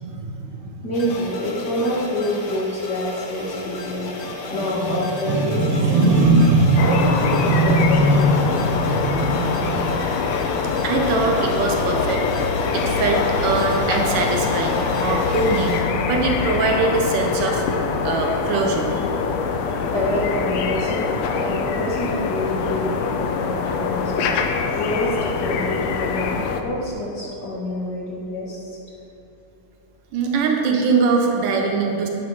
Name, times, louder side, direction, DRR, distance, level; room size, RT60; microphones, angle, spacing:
voice 1, 0.0-0.8 4.2-5.0 5.3-9.4 9.8-10.0 10.4-10.6 10.8-12.2 12.7-15.8 16.1-17.6 18.0-19.1 30.1-32.1, right 3 dB, 85° right, 1 dB, 2.8 m, -21 dB
voice 2, 0.8-6.2 6.8-8.4 19.9-24.3 24.7-28.8, left 1 dB, 35° left, -5 dB, 2.1 m, -27 dB
sound 1, 0.9-15.8, left 3 dB, 55° left, 1.9 m, -34 dB
sound 2, 6.8-26.6, left 5 dB, 70° left, 1.7 m, -24 dB
14.5 x 9.2 x 5.7 m, 3.0 s
omnidirectional pair, 3.6 m